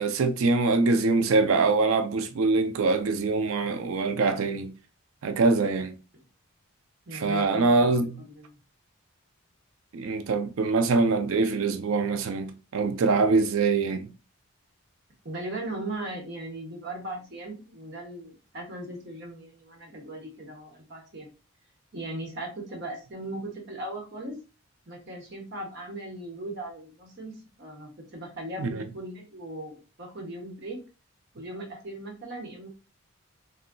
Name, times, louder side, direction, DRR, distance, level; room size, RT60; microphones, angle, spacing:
voice 1, 0.0-4.7 5.2-6.0 7.1-8.2 9.9-14.1 28.6-28.8, right 3 dB, 75° right, 0.4 m, -24 dB
voice 2, 7.1-8.6 15.2-21.3 21.9-24.4 24.9-30.8 31.3-32.7, right 1 dB, 50° right, 1.0 m, -38 dB
3.7 x 2.1 x 2.2 m
head